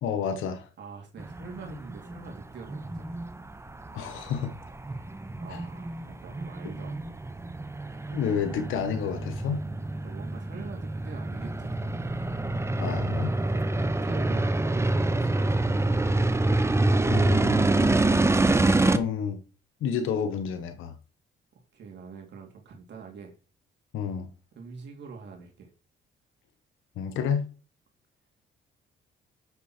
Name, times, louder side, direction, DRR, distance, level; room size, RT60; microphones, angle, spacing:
voice 1, 0.0-0.7 3.9-4.5 5.5-5.6 8.1-9.6 12.8-13.3 17.1-18.0 18.9-19.4 19.8-21.0 23.9-24.3 27.0-27.4, left 7 dB, 85° left, 1.3 m, -30 dB
voice 2, 0.8-3.1 5.4-7.2 10.0-12.1 13.3-16.3 21.7-23.3 24.5-25.7, right 5 dB, 65° right, 2.8 m, -44 dB
sound 1, 1.2-19.0, right 2 dB, 15° right, 0.9 m, -26 dB
8.4 x 6.7 x 4.4 m
cardioid pair, 90°, 20 cm